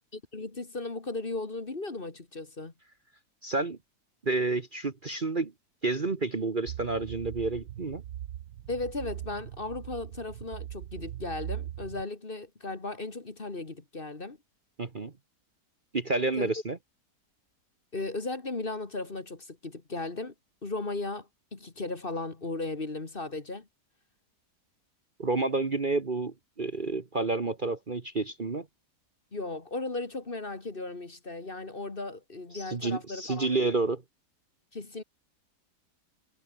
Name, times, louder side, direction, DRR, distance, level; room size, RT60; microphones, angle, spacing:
voice 1, 0.1-2.7 8.7-14.4 16.4-16.5 17.9-20.3 20.6-23.7 29.3-33.6 34.7-35.0, left 2 dB, 35° left, 2.1 m, -36 dB
voice 2, 3.4-3.8 4.2-5.5 5.8-8.0 14.8-15.1 15.9-16.8 25.2-28.7 32.5-34.0, right 3 dB, 30° right, 1.4 m, -29 dB
sound 1, 6.7-12.0, right 12 dB, 75° right, 1.4 m, -40 dB
omnidirectional pair, 1.7 m